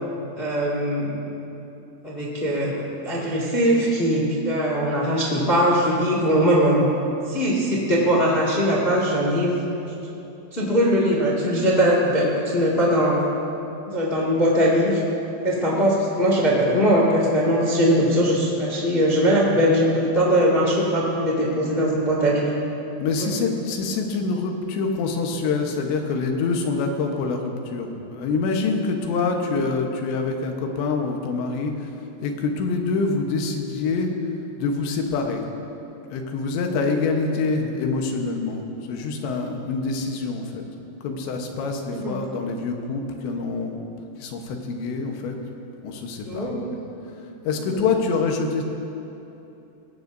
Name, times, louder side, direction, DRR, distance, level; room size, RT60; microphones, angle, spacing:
voice 1, 0.3-1.1 2.0-2.8 3.0-6.9 7.3-9.6 9.9-10.0 10.5-13.2 13.9-15.0 15.4-22.5 23.2-23.4 41.9-42.2 46.3-46.6 47.7-47.8, equal, 30° left, -5 dB, 1.0 m, -21 dB
voice 2, 23.0-31.9 32.2-34.1 34.6-35.4 36.1-40.6 41.0-43.8 44.2-45.4 45.8-46.7 47.1-48.6, left 4 dB, 90° left, 3 dB, 3.4 m, -26 dB
20.5 x 16.5 x 2.7 m, 3.0 s
omnidirectional pair, 4.9 m